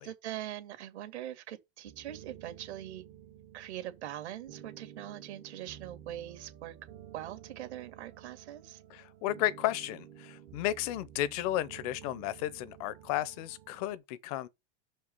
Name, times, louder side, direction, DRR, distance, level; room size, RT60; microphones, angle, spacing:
voice 1, 0.0-3.0 3.5-6.8 7.1-8.8, right 12 dB, 70° right, 2.3 m, -42 dB
sound 1, 1.8-14.0, right 10 dB, 35° right, 0.7 m, -52 dB
voice 2, 8.9-14.5, left 14 dB, 35° left, 0.6 m, -33 dB
6.4 x 5.2 x 5.4 m
supercardioid pair, 170°, 34 cm